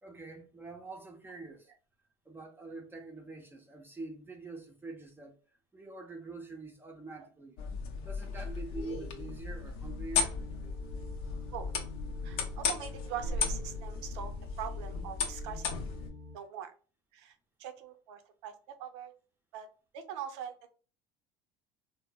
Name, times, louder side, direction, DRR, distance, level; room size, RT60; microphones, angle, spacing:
voice 1, 0.0-1.7 2.3-5.4 5.7-7.6 8.0-10.4, right 3 dB, 15° right, 0.6 m, -45 dB
sound 1, 7.6-16.1, left 5 dB, 75° left, 0.7 m, -36 dB
sound 2, 10.1-16.4, left 2 dB, 25° left, 0.6 m, -49 dB
voice 2, 12.2-15.7 16.3-16.7 17.1-17.3 17.6-19.1 19.5-19.7 19.9-20.7, right 9 dB, 85° right, 0.6 m, -42 dB
3.6 x 2.0 x 2.3 m
supercardioid pair, 105°, 14 cm